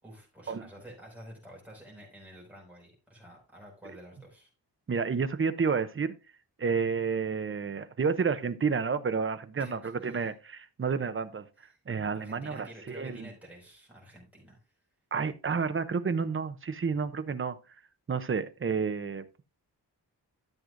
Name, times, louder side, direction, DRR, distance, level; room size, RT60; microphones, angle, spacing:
voice 1, 0.0-4.5 9.6-10.3 11.6-11.8 12.1-14.6, right 1 dB, 5° right, 5.2 m, -50 dB
voice 2, 4.9-6.2 6.6-11.5 11.9-13.3 15.1-17.6 18.1-19.3, right 5 dB, 30° right, 0.6 m, -30 dB
13.0 x 7.7 x 2.5 m
wide cardioid pair, 170°, 40 cm